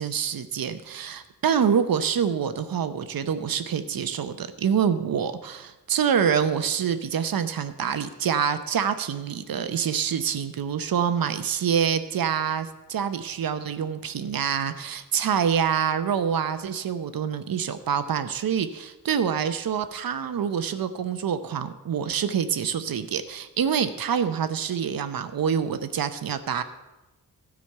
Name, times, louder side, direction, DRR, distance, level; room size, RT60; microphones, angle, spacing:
voice 1, 0.0-26.6, right 7 dB, 75° right, 10 dB, 0.8 m, -26 dB
12.5 x 5.1 x 7.9 m, 1.0 s
cardioid pair, 55°, 35 cm